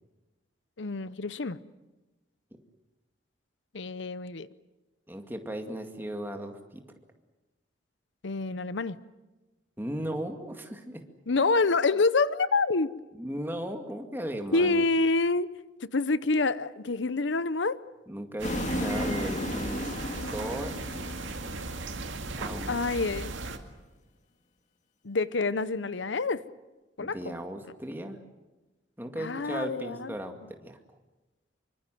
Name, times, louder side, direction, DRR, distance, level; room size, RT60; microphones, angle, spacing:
voice 1, 0.8-1.6 3.7-4.5 8.2-9.0 11.3-12.9 14.5-15.5 15.8-17.8 22.7-23.3 25.0-26.4 27.0-27.3 29.2-30.1, left 3 dB, 70° left, 0.8 m, -27 dB
voice 2, 5.1-6.8 9.8-11.0 13.1-14.9 18.1-19.8 20.3-20.9 22.4-22.7 27.0-28.2 29.0-30.8, equal, 10° right, 2.2 m, -36 dB
sound 1, 18.4-22.7, left 1 dB, 40° left, 2.5 m, -35 dB
sound 2, 18.4-23.6, right 3 dB, 85° right, 2.2 m, -37 dB
25.0 x 24.5 x 7.8 m
head